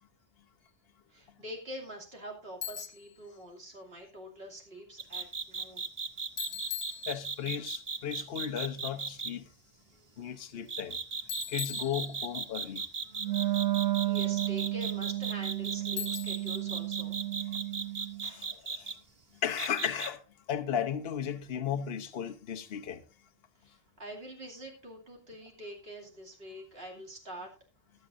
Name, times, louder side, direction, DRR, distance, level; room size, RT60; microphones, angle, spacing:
voice 1, 1.1-5.9 6.4-6.5 6.9-7.0 9.9-10.4 13.1-13.7 14.0-17.2 18.2-18.5 23.6-27.5, equal, 60° right, 2.9 m, -46 dB
Bicycle, 2.6-3.1 6.4-7.6 11.3-12.5 16.0-16.6, left 9 dB, 40° left, 1.0 m, -40 dB
sound 1, 5.0-9.3 10.7-18.9 19.6-20.1, right 4 dB, 35° right, 0.7 m, -36 dB
voice 2, 7.1-9.4 10.2-11.0 11.5-12.8 18.3-19.0 19.4-20.2 20.5-23.0, left 8 dB, 60° left, 1.1 m, -35 dB
Wind instrument woodwind instrument, 13.2-18.3, right 17 dB, 90° right, 1.1 m, -32 dB
20.0 x 7.8 x 2.6 m
omnidirectional pair, 1.1 m